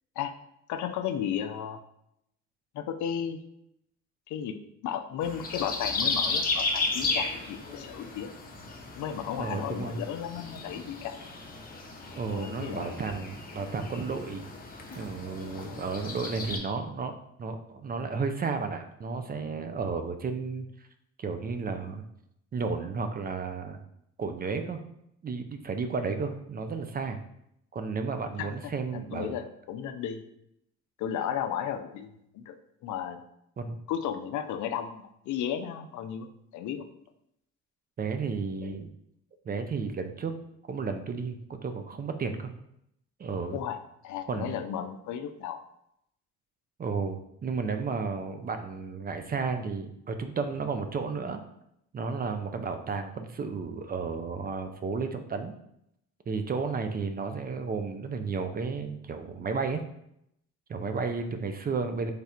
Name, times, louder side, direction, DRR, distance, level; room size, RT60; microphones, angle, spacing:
voice 1, 0.7-1.8 2.7-3.4 4.3-4.6 4.8-8.3 9.0-11.1 12.2-13.0 15.6-15.8 28.4-30.2 31.0-32.6 32.8-33.2 33.9-36.3 36.5-36.8 43.5-43.8 44.0-45.6, left 9 dB, 75° left, 8 dB, 0.5 m, -34 dB
sound 1, 5.2-16.6, left 3 dB, 30° left, 0.7 m, -34 dB
voice 2, 9.4-10.0 12.1-14.4 15.0-20.7 21.2-22.0 22.5-23.8 24.2-24.8 25.2-27.2 27.7-29.3 33.6-33.8 38.0-38.9 39.5-40.3 40.7-42.5 43.2-43.6 44.3-44.6 46.8-51.4 51.9-55.5 56.3-59.8 60.7-62.1, right 4 dB, 30° right, 7 dB, 0.4 m, -33 dB
3.3 x 2.4 x 4.2 m, 0.77 s
cardioid pair, 90°, 30 cm